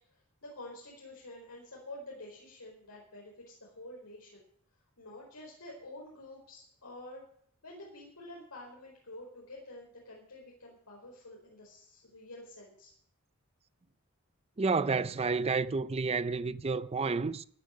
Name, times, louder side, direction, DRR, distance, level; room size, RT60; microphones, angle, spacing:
voice 1, 0.1-4.4 5.0-7.2 7.6-12.9, left 1 dB, 90° left, 4.8 m, -49 dB
voice 2, 14.6-17.4, right 4 dB, 25° right, 0.5 m, -30 dB
15.5 x 10.0 x 6.6 m
head